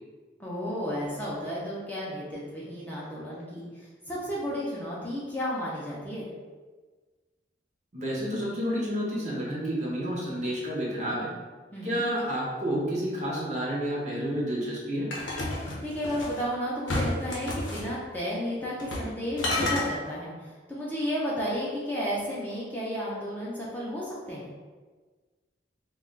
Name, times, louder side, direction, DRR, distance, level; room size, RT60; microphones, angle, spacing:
voice 1, 0.4-6.3 11.7-12.0 15.8-24.5, equal, 10° left, -7 dB, 0.5 m, -33 dB
voice 2, 7.9-11.3 11.8-15.1, equal, 40° right, -4 dB, 0.6 m, -30 dB
sound 1, 15.1-16.4 16.9-17.9 18.8-19.1 19.4-19.9, left 2 dB, 85° left, 0.6 m, -30 dB
2.3 x 2.2 x 3.7 m, 1.4 s
head